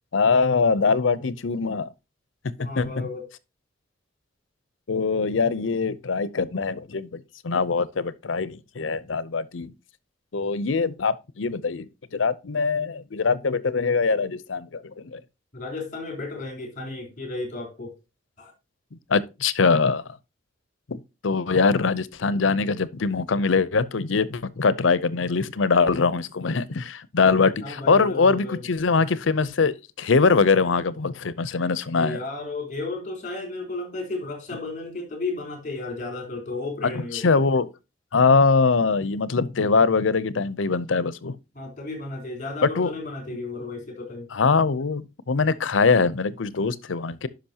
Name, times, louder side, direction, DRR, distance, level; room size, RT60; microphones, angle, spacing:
voice 1, 0.1-1.9 2.6-3.1 4.9-9.7 10.3-15.2 19.1-20.0 20.9-32.2 37.1-37.7 38.1-41.4 42.8-42.9 44.3-47.3, left 4 dB, 80° left, 0.7 m, -22 dB
voice 2, 2.6-3.3 15.5-17.9 18.4-18.5 27.6-28.7 32.0-37.3 41.5-44.3, left 3 dB, 40° left, 3.8 m, -33 dB
10.5 x 5.9 x 2.8 m
head